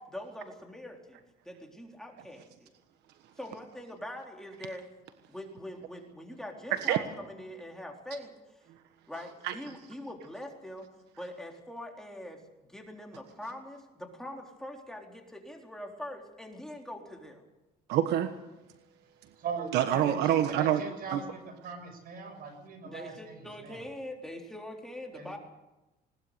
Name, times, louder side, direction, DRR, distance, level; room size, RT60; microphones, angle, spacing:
voice 1, 0.1-2.7 3.4-4.9 5.3-8.6 9.1-10.9 11.2-12.4 12.7-17.4 22.8-25.4, left 1 dB, 5° left, 1 dB, 3.8 m, -43 dB
voice 2, 17.9-18.3 19.7-20.8 21.1-21.2, right 11 dB, 85° right, 9 dB, 1.4 m, -26 dB
voice 3, 19.4-20.1 20.5-23.9 25.1-25.3, right 5 dB, 60° right, 7 dB, 6.7 m, -40 dB
20.5 x 19.5 x 6.8 m, 1.0 s
cardioid pair, 110°, 17 cm